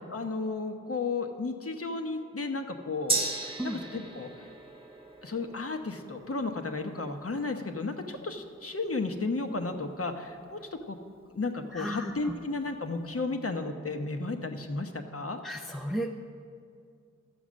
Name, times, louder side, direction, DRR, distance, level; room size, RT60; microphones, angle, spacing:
voice 1, 0.1-3.6 3.8-4.3 5.2-11.0 11.3-15.4, left 3 dB, 50° left, 5 dB, 0.9 m, -33 dB
Gong, 3.1-10.9 11.2-11.3, right 3 dB, 15° right, 1.2 m, -38 dB
voice 2, 11.7-12.1 15.4-16.1, equal, ahead, 2 dB, 0.5 m, -33 dB
12.0 x 7.1 x 6.2 m, 2.3 s
wide cardioid pair, 60°, 31 cm